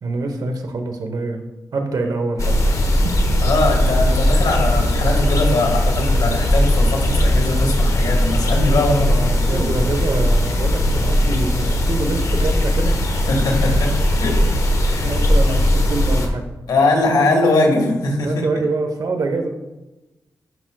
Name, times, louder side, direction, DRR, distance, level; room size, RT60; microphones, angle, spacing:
voice 1, 0.0-2.7 3.0-3.1 9.1-13.4 15.0-16.4 18.2-19.5, right 3 dB, 65° right, 5 dB, 1.0 m, -25 dB
sound 1, 2.4-16.3, left 1 dB, 50° left, 1.1 m, -18 dB
voice 2, 3.4-9.7 13.3-14.4 14.8-15.1 16.7-18.5, left 2 dB, 85° left, 1 dB, 1.7 m, -20 dB
12.0 x 5.9 x 2.3 m, 1.0 s
wide cardioid pair, 95°, 7 cm